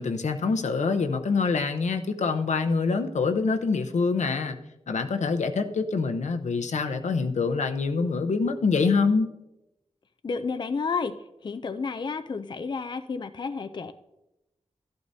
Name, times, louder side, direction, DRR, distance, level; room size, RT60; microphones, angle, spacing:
voice 1, 0.0-4.6 4.9-9.3, left 4 dB, 80° left, 7 dB, 0.8 m, -25 dB
voice 2, 10.2-11.2 11.4-13.9, left 5 dB, 40° left, 9 dB, 0.4 m, -31 dB
13.0 x 11.5 x 2.7 m, 0.91 s
wide cardioid pair, 135°, 12 cm